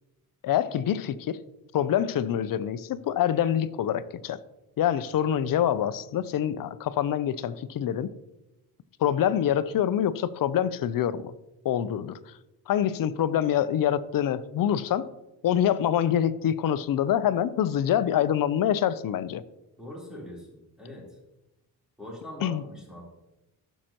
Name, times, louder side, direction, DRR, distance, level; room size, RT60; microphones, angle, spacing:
voice 1, 0.4-1.4 1.7-4.4 4.8-8.1 9.0-11.3 11.6-12.2 12.7-15.1 15.4-19.4 22.4-22.6, left 10 dB, 55° left, 0.6 m, -25 dB
voice 2, 19.8-21.1 22.0-23.0, left 1 dB, ahead, 3.7 m, -42 dB
14.5 x 6.5 x 3.0 m
cardioid pair, 100°, 39 cm